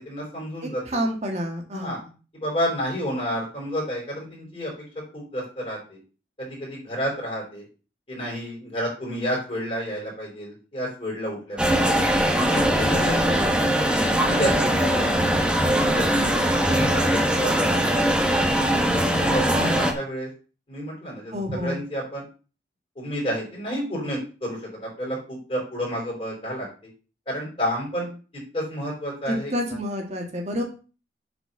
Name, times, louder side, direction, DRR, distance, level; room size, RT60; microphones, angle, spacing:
voice 1, 0.0-1.0 1.7-2.0 2.3-4.7 5.1-6.0 6.4-7.6 8.1-12.0 12.5-13.5 13.9-15.4 15.9-16.4 16.6-18.1 18.6-20.3 20.7-22.2 23.0-26.7 27.3-28.1 28.5-29.5, equal, 30° left, -4 dB, 4.4 m, -30 dB
voice 2, 0.6-2.1 12.9-13.5 19.2-19.8 21.3-21.8 29.3-30.6, equal, 40° right, 1 dB, 2.0 m, -29 dB
sound 1, 11.6-19.9, equal, 5° right, 1.2 m, -21 dB
8.0 x 5.0 x 6.8 m, 0.35 s
head